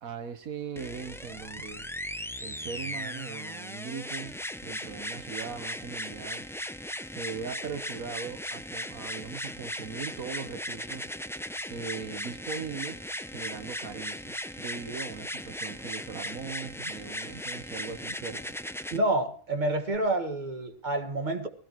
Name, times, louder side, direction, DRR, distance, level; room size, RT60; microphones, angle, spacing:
voice 1, 0.0-1.9 2.4-4.4 4.6-6.4 7.1-11.0 11.7-13.0 13.3-18.5, right 6 dB, 90° right, 9 dB, 1.7 m, -39 dB
sound 1, 0.8-19.0 19.9-20.0, equal, 5° left, 0.4 m, -38 dB
voice 2, 18.9-21.5, right 1 dB, 35° right, 6 dB, 2.0 m, -28 dB
20.0 x 17.5 x 3.1 m, 0.44 s
omnidirectional pair, 1.4 m